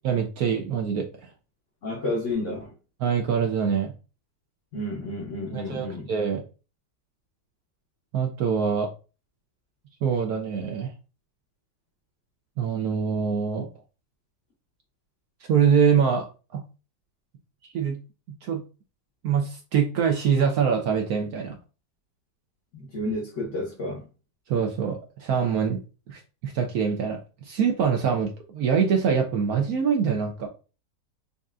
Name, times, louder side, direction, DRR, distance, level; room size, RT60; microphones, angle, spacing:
voice 1, 0.0-1.3 3.0-3.9 5.5-6.4 8.1-8.9 10.0-10.9 12.6-13.7 15.5-16.3 16.5-16.6 17.7-18.0 18.4-18.6 19.2-21.5 24.5-25.8 26.1-27.2 27.4-30.5, right 6 dB, 70° right, 0.9 m, -24 dB
voice 2, 1.8-2.7 4.7-6.1 22.7-24.1, left 1 dB, 55° left, 0.9 m, -31 dB
5.3 x 2.4 x 2.3 m
omnidirectional pair, 2.0 m